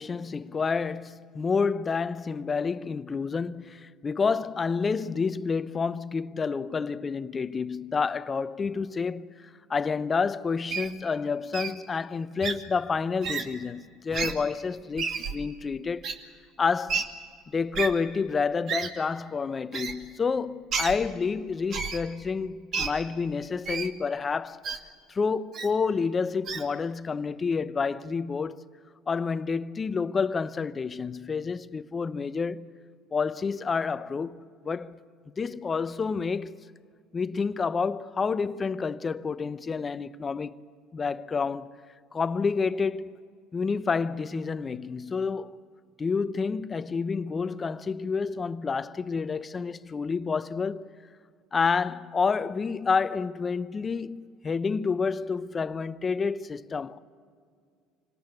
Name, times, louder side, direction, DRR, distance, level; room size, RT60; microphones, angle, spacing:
voice 1, 0.0-16.1 16.6-17.1 17.5-24.6 25.1-28.6 29.1-32.7 33.1-35.0 35.3-36.5 37.1-40.6 40.9-41.8 42.1-43.2 43.5-45.6 46.0-50.9 51.5-57.0, left 5 dB, 30° left, 0.8 m, -29 dB
Wild animals, 10.7-10.9 11.5-11.7 12.4-12.5 13.2-13.4 14.1-14.3 15.0-15.3 16.0-16.1 16.9-17.0 17.7-17.9 18.7-18.9 19.7-19.9 20.7-20.9 21.7-22.0 22.7-22.9 23.7-23.9 24.6-24.8 25.5-25.7 26.5-26.6, right 5 dB, 55° right, 2.3 m, -30 dB
26.0 x 18.5 x 8.4 m
supercardioid pair, 85°, 0 cm